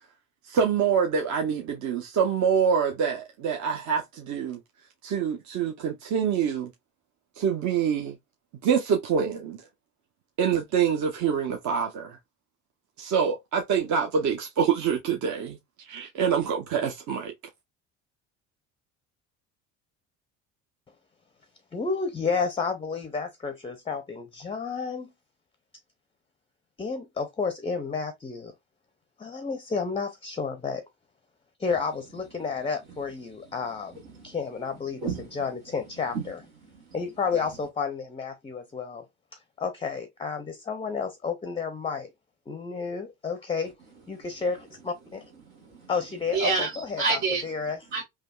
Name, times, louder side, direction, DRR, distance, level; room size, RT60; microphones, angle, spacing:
voice 1, 0.4-4.6 5.0-6.7 7.4-8.2 8.6-9.6 10.4-12.2 13.0-15.6 15.9-17.3, right 7 dB, 50° right, 0.7 m, -26 dB
voice 2, 21.7-25.1 26.8-28.5 29.2-30.8 31.6-34.0 34.2-35.0 35.3-36.4 36.9-39.1 39.6-42.1 42.5-43.7 44.1-45.2 45.9-47.8, left 5 dB, 15° left, 0.5 m, -31 dB
voice 3, 33.9-34.4 35.0-35.3 36.1-36.3 36.6-36.9 45.6-45.9 46.3-47.5 47.9-48.0, right 4 dB, 80° right, 1.5 m, -29 dB
3.4 x 2.3 x 2.3 m
hypercardioid pair, 70°, 39 cm